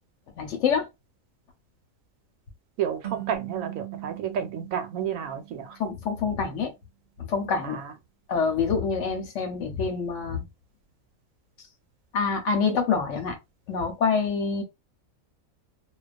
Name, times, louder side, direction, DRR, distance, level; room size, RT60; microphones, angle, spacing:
voice 1, 0.4-0.9 5.8-6.7 7.3-7.8 8.3-10.4 12.1-13.4 13.7-14.6, left 5 dB, 70° left, 0.9 m, -26 dB
voice 2, 2.8-5.8 7.6-7.9, right 8 dB, 80° right, 1.0 m, -31 dB
sound 1, 3.0-6.2, right 19 dB, 60° right, 0.5 m, -40 dB
2.3 x 2.2 x 2.4 m
omnidirectional pair, 1.4 m